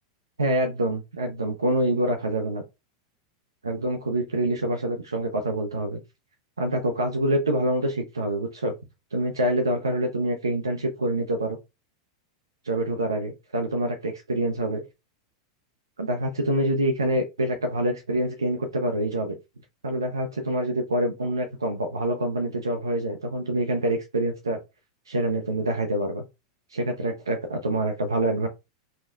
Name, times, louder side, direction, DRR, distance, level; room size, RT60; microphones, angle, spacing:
voice 1, 0.4-2.6 3.6-6.0 6.6-8.7 9.1-11.6 12.6-14.8 16.0-19.4 19.8-24.6 25.1-26.3 26.7-28.5, right 1 dB, 85° right, 0.5 m, -26 dB
3.5 x 2.1 x 2.4 m
hypercardioid pair, 95°, 2 cm